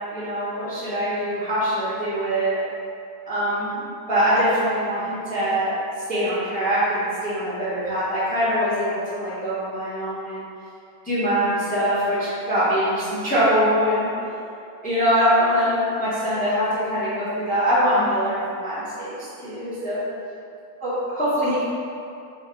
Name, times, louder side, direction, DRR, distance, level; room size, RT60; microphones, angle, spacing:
voice 1, 0.1-2.6 3.3-3.8 4.1-5.7 6.1-10.4 11.0-12.2 12.5-14.0 14.8-20.0 20.8-21.6, equal, 10° left, -11 dB, 0.4 m, -23 dB
5.2 x 2.2 x 3.7 m, 2.6 s
omnidirectional pair, 2.2 m